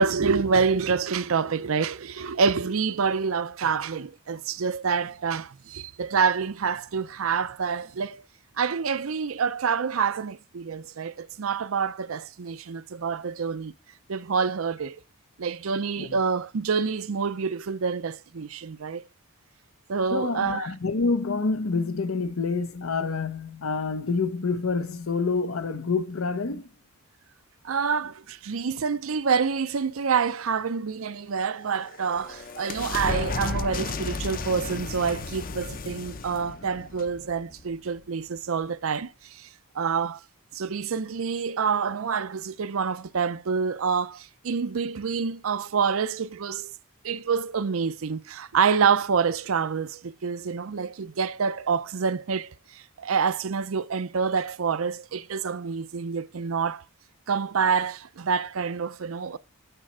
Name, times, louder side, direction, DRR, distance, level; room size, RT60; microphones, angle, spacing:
voice 1, 0.0-8.2 8.6-13.7 14.1-15.0 15.4-19.0 19.9-20.7 27.6-39.5 39.7-40.2 40.5-46.7 47.0-56.8 57.3-59.4, right 5 dB, 75° right, 0.6 m, -27 dB
voice 2, 20.1-26.6, left 4 dB, 80° left, 0.8 m, -27 dB
sound 1, 31.6-38.0, left 3 dB, 45° left, 0.7 m, -34 dB
8.9 x 4.3 x 6.1 m
head